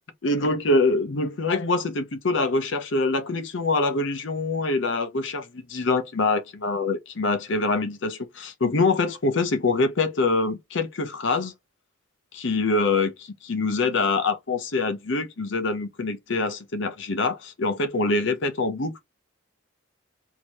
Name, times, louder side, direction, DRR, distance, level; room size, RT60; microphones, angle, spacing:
voice 1, 0.2-11.5 12.3-19.1, left 3 dB, 60° left, 0.7 m, -25 dB
4.5 x 2.8 x 2.8 m
head